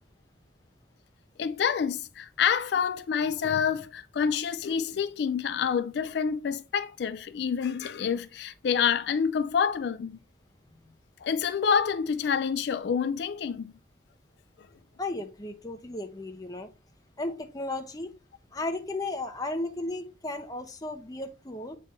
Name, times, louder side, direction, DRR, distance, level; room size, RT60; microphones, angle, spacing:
voice 1, 1.4-10.2 11.2-13.7, left 7 dB, 65° left, 0.3 m, -27 dB
voice 2, 15.0-16.7 17.2-18.1 18.5-21.8, left 2 dB, 20° left, 0.8 m, -34 dB
8.0 x 3.3 x 4.3 m
head